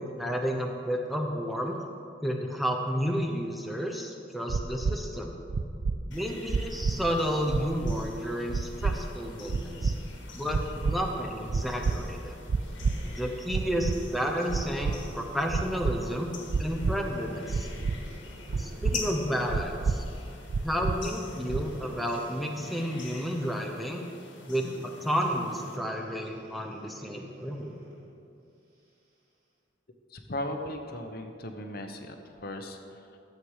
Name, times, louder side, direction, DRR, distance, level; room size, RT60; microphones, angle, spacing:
voice 1, 0.0-1.8 2.2-5.3 6.1-9.9 10.3-12.4 13.0-16.3 16.6-17.7 18.6-20.0 20.6-24.0 24.5-27.8, equal, ahead, 1 dB, 0.8 m, -31 dB
sound 1, 4.5-5.0 5.5-6.0 6.5-6.9 7.5-8.0 8.5-8.9 9.5-9.9 10.5-10.9 11.5-12.0 12.5-12.9 13.5-14.0 14.5-15.0 15.5-15.9 16.5-16.9 17.5-18.0 18.5-18.9 19.5-19.9 20.5-20.9 21.5-21.8, right 4 dB, 80° right, 0.5 m, -27 dB
sound 2, 6.1-25.8, left 4 dB, 75° left, 1.5 m, -46 dB
Breathing, 12.5-15.2 15.8-16.0 16.9-19.7 21.2-24.0 25.4-28.2 28.8-28.9, right 1 dB, 50° right, 2.4 m, -49 dB
voice 2, 30.1-33.2, left 1 dB, 55° left, 5 dB, 0.9 m, -37 dB
13.0 x 7.9 x 4.8 m, 2.5 s
head